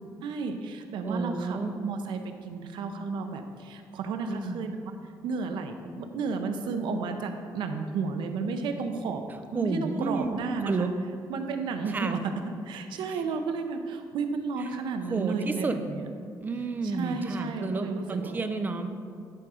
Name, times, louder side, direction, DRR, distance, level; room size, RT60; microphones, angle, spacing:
voice 1, 0.2-4.9 5.2-9.2 9.5-10.9 11.3-12.2 12.7-16.1 16.8-18.6, right 4 dB, 85° right, 6 dB, 0.6 m, -33 dB
voice 2, 1.0-1.7 4.3-4.7 9.5-10.3 10.7-10.9 11.9-12.2 15.1-15.7 16.4-18.9, right 3 dB, 25° right, 8 dB, 0.4 m, -30 dB
10.5 x 3.7 x 4.9 m, 2.3 s
cardioid pair, 150°, 8 cm